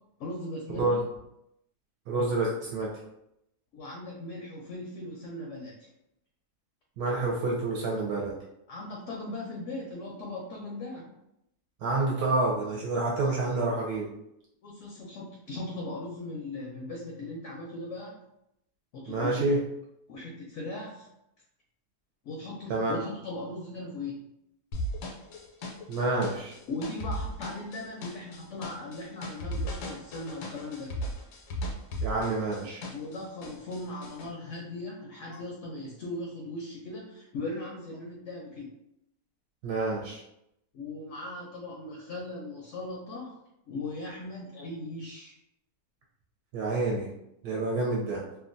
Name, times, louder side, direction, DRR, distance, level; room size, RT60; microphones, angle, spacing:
voice 1, 0.2-1.0 3.7-5.9 8.7-11.1 14.6-18.1 18.9-19.5 20.1-21.1 22.2-24.2 26.7-30.9 32.9-38.7 40.7-43.3 43.7-45.3, left 2 dB, 70° left, -2 dB, 0.7 m, -38 dB
voice 2, 2.1-2.9 7.0-8.3 11.8-14.1 19.1-19.6 22.7-23.0 25.9-26.5 32.0-32.8 39.6-40.2 46.5-47.1 47.4-48.2, right 2 dB, 75° right, -3 dB, 1.1 m, -28 dB
sound 1, 24.7-33.2 33.4-34.3, equal, 85° left, 1.2 m, -36 dB
2.8 x 2.2 x 2.5 m, 0.82 s
omnidirectional pair, 1.7 m